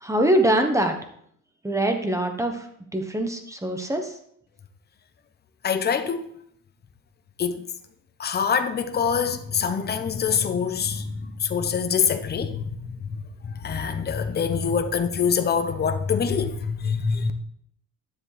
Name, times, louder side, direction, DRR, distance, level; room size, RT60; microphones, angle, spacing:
voice 1, 0.0-0.9 1.6-2.6 2.9-4.1, right 1 dB, 10° right, 1.1 m, -23 dB
voice 2, 5.6-6.3 7.4-7.7 8.2-17.3, left 6 dB, 30° left, 0.8 m, -25 dB
10.5 x 7.3 x 3.4 m
cardioid pair, 110°, 34 cm